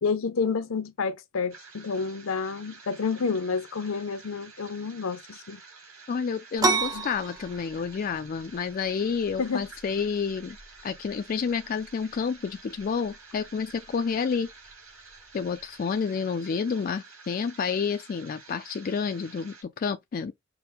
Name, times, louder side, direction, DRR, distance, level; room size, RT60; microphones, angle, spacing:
voice 1, 0.0-5.6 6.9-7.1 9.4-9.7, left 5 dB, 75° left, 0.6 m, -29 dB
sound 1, 1.5-19.6, right 4 dB, 80° right, 2.6 m, -50 dB
voice 2, 6.1-10.6 10.8-14.5 15.3-20.3, left 6 dB, 40° left, 0.3 m, -29 dB
sound 2, 6.6-16.0, right 3 dB, 20° right, 0.5 m, -35 dB
5.7 x 2.1 x 3.3 m
head